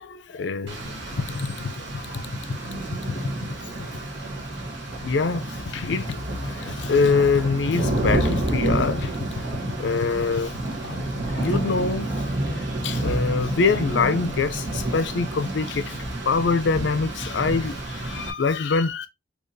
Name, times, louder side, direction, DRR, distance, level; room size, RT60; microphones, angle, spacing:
voice 1, 0.0-2.4 3.0-4.0 5.0-9.4 9.8-12.1 12.8-19.1, left 4 dB, 70° left, 0.5 m, -25 dB
Rain, 0.7-18.3, right 1 dB, 75° right, 1.2 m, -29 dB
4.1 x 2.8 x 2.6 m
head